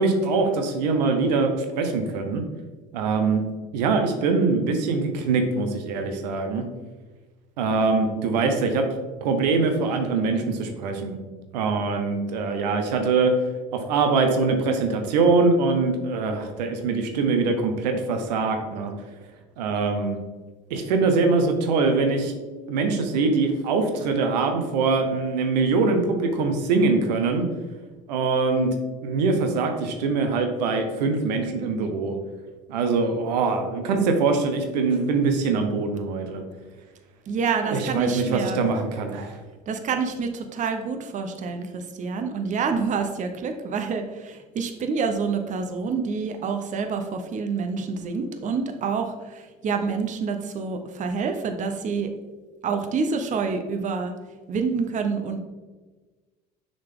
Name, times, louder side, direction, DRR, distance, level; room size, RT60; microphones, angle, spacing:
voice 1, 0.0-2.4 2.9-3.4 3.7-6.6 7.6-8.8 9.2-11.2 11.5-13.3 13.7-18.9 19.6-20.2 20.7-22.3 22.7-27.4 28.1-28.7 29.0-32.1 32.7-36.4 37.7-39.4, right 4 dB, 80° right, 5 dB, 0.9 m, -23 dB
voice 2, 37.3-38.6 39.7-52.1 52.6-54.1 54.5-55.4, right 5 dB, 35° right, 6 dB, 0.7 m, -27 dB
6.5 x 4.0 x 3.6 m, 1.3 s
hypercardioid pair, 80°, 21 cm